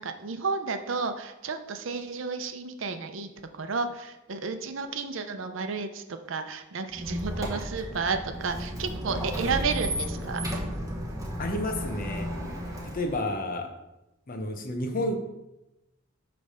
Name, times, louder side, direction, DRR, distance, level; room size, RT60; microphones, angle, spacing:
voice 1, 0.0-10.4, right 4 dB, 75° right, 8 dB, 0.6 m, -32 dB
Squeak, 6.9-13.3, equal, 15° right, 1.3 m, -33 dB
voice 2, 11.4-12.3 12.9-13.7 14.3-15.2, left 1 dB, 45° left, 5 dB, 0.8 m, -30 dB
8.4 x 3.4 x 5.5 m, 0.96 s
head